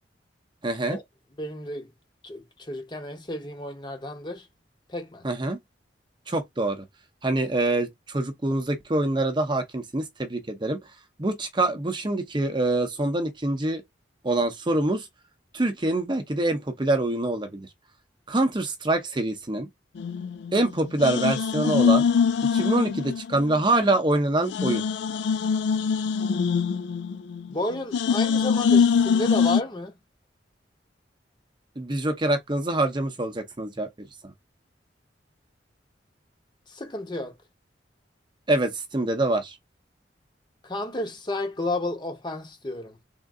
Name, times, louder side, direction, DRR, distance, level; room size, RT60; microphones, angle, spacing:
voice 1, 0.6-1.0 5.2-5.6 6.3-6.8 7.2-10.8 11.2-13.8 14.2-15.1 15.5-17.7 18.3-19.7 20.5-22.1 22.5-24.8 31.8-33.9 34.2-34.3 38.5-39.5, right 2 dB, 25° right, 0.7 m, -25 dB
voice 2, 1.4-1.9 2.2-4.4 4.9-5.2 27.5-29.9 36.7-37.3 40.6-43.0, left 1 dB, 25° left, 0.9 m, -32 dB
sound 1, 20.0-20.7 21.0-23.6 23.9-24.0 24.4-27.5 27.9-29.6, left 6 dB, 70° left, 0.3 m, -23 dB
3.6 x 2.5 x 3.6 m
head